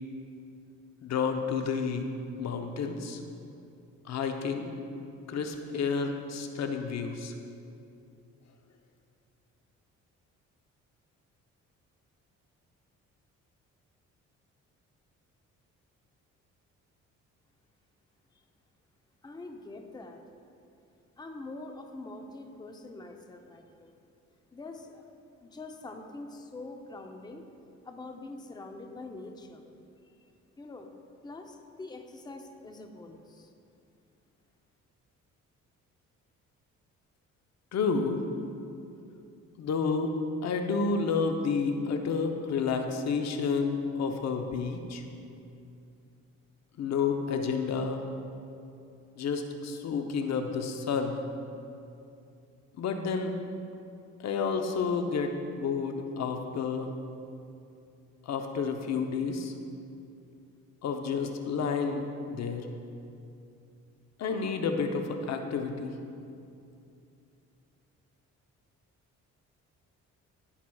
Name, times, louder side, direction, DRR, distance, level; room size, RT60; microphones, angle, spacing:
voice 1, 1.0-2.1 2.4-3.2 4.1-4.8 5.3-7.3 37.7-38.2 39.6-40.1 40.4-45.0 46.8-48.0 49.2-51.2 52.8-53.3 54.2-56.9 58.3-59.5 60.8-62.7 64.2-65.9, left 5 dB, 60° left, 5 dB, 0.7 m, -30 dB
voice 2, 19.2-20.2 21.2-23.9 24.5-25.0 25.4-27.4 27.8-29.7 30.6-30.9 31.2-33.5, left 2 dB, 15° left, 4 dB, 0.6 m, -44 dB
17.0 x 5.8 x 2.3 m, 2.6 s
cardioid pair, 90°, 30 cm